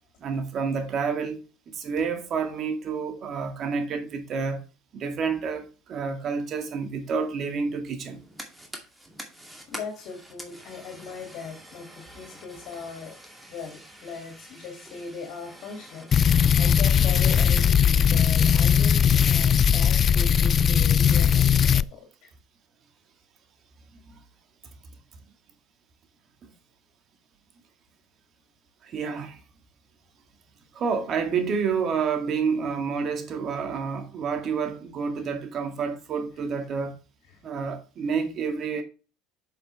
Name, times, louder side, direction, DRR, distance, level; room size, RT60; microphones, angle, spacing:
voice 1, 0.2-4.6 4.9-8.2 24.1-24.2 26.4-26.5 28.8-29.4 30.7-37.0 37.4-38.8, right 5 dB, 45° right, 1.9 m, -29 dB
Fire, 8.0-19.6, right 1 dB, 5° right, 2.3 m, -47 dB
voice 2, 9.7-13.1 13.5-22.3 37.3-37.4, left 5 dB, 60° left, 2.5 m, -39 dB
sound 1, 16.1-21.8, left 8 dB, 40° left, 0.3 m, -19 dB
7.3 x 6.7 x 3.4 m
hypercardioid pair, 85°, 0 cm